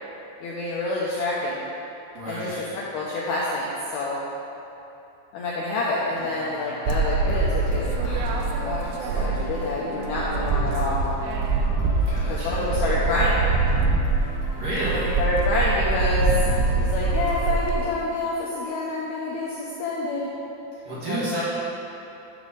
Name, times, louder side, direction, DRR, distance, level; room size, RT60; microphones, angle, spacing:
voice 1, 0.4-1.6 2.3-4.2 5.3-11.0 12.3-13.4 14.9-16.3 16.8-20.3 21.1-21.4, left 2 dB, 85° left, -6 dB, 2.2 m, -28 dB
voice 2, 2.1-2.5 12.1-12.7 14.5-15.1 20.8-21.4, right 1 dB, 55° right, -9 dB, 2.8 m, -30 dB
sound 1, 6.1-18.0, left 2 dB, 65° left, 2.4 m, -39 dB
sound 2, 6.9-9.7 10.0-17.8, right 4 dB, 85° right, 2.4 m, -24 dB
11.0 x 6.1 x 3.9 m, 2.8 s
omnidirectional pair, 5.5 m